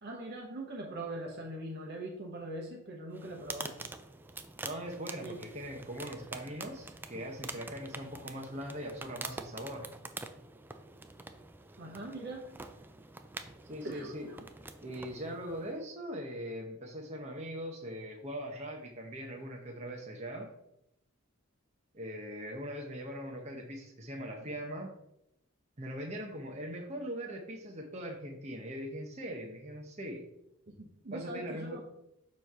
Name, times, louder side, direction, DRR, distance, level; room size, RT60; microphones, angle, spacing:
voice 1, 0.0-3.8 5.2-5.4 11.8-12.5 13.8-14.4 30.8-31.8, right 2 dB, 50° right, -1 dB, 1.1 m, -41 dB
sound 1, 3.1-15.8, right 3 dB, 10° right, 0.3 m, -46 dB
voice 2, 4.6-9.9 13.7-14.3 14.8-20.5 21.9-24.9 25.8-30.2 31.1-31.8, equal, 35° right, 1 dB, 0.8 m, -41 dB
6.9 x 3.1 x 5.5 m, 0.83 s
head